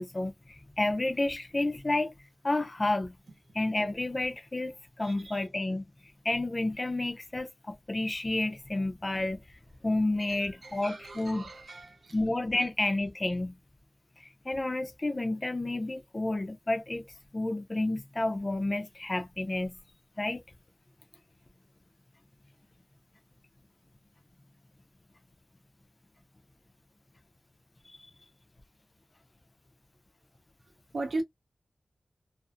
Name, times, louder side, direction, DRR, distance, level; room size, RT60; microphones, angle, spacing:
voice 1, 0.0-2.1 2.4-3.1 3.5-5.8 6.2-9.4 9.8-11.5 12.1-13.5 14.5-17.1 17.3-19.8 20.2-20.4, left 2 dB, 30° left, 0.5 m, -30 dB
voice 2, 5.0-5.4 10.2-12.1 30.9-31.2, right 2 dB, 70° right, 0.8 m, -38 dB
2.5 x 2.0 x 2.4 m
wide cardioid pair, 80°, 0 cm